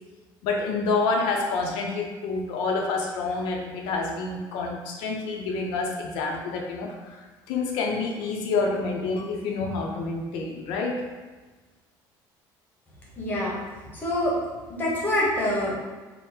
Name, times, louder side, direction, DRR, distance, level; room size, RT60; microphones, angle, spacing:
voice 1, 0.4-11.0, left 3 dB, 85° left, 1 dB, 0.6 m, -28 dB
voice 2, 13.2-14.4 14.7-15.7, left 1 dB, 20° left, -5 dB, 0.9 m, -26 dB
3.7 x 2.1 x 4.2 m, 1.3 s
cardioid pair, 165°, 9 cm